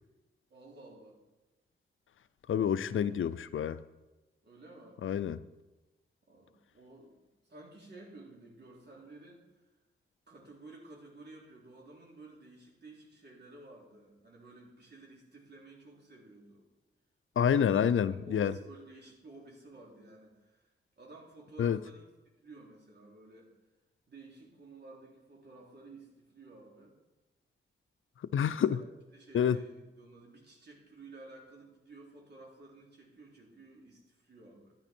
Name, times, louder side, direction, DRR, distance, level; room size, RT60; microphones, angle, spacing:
voice 1, 0.5-1.2 2.6-3.2 4.4-5.0 6.3-7.2 7.5-9.6 10.3-16.6 17.5-17.8 18.2-22.0 22.4-23.5 24.1-27.0 28.5-34.7, right 2 dB, 55° right, 3.5 m, -53 dB
voice 2, 2.5-3.8 5.0-5.4 17.4-18.5 21.6-21.8 28.3-28.8 29.3-29.6, left 8 dB, 75° left, 0.5 m, -28 dB
12.5 x 10.0 x 4.4 m
wide cardioid pair, 120°, 21 cm